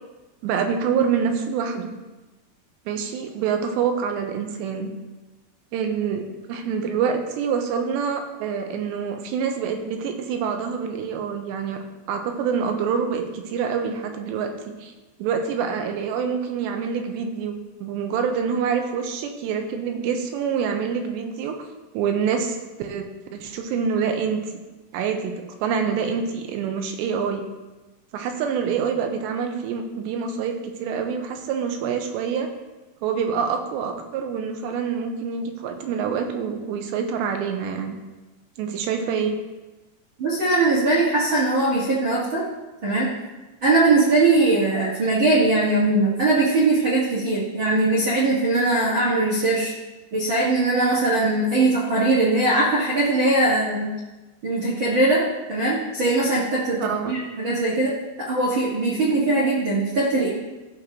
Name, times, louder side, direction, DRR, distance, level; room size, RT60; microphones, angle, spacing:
voice 1, 0.4-1.9 2.9-4.9 5.7-6.2 6.5-11.8 12.1-14.9 15.2-21.6 21.9-23.1 23.3-24.4 24.9-27.4 28.1-32.5 33.0-37.9 38.6-39.4 56.8-57.2, right 6 dB, 90° right, 5 dB, 3.1 m, -26 dB
voice 2, 40.2-42.4 42.8-43.1 43.6-49.7 50.1-53.9 54.4-55.2 55.5-57.9 58.2-60.3, right 2 dB, 50° right, -8 dB, 1.4 m, -20 dB
15.0 x 6.6 x 3.0 m, 1.1 s
omnidirectional pair, 4.9 m